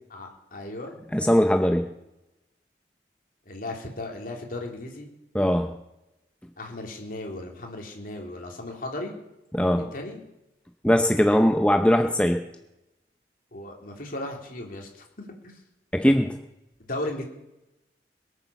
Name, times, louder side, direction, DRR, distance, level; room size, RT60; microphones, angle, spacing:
voice 1, 0.1-1.0 3.4-5.1 6.6-9.2 9.7-10.2 13.5-15.6 16.8-17.2, left 1 dB, 50° left, 1 dB, 3.2 m, -36 dB
voice 2, 1.1-1.9 5.3-5.7 9.5-9.9 10.8-12.4 15.9-16.4, equal, 5° left, 5 dB, 0.7 m, -20 dB
22.0 x 8.3 x 7.0 m, 0.90 s
head